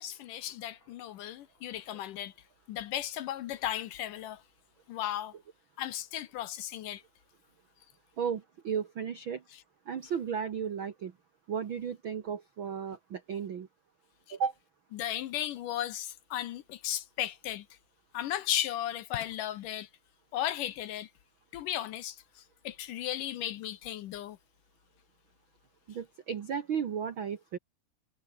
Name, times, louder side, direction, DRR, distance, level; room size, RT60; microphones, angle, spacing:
voice 1, 0.0-2.3 2.7-4.4 4.9-5.3 5.8-7.0 9.5-9.6 14.3-14.4 14.9-17.7 18.1-19.9 20.3-21.1 21.5-24.4, left 12 dB, 70° left, 2.2 m, -35 dB
voice 2, 8.2-9.4 9.9-11.1 11.5-13.7 14.3-14.5 25.9-27.6, right 7 dB, 75° right, 1.1 m, -34 dB
omnidirectional pair, 4.4 m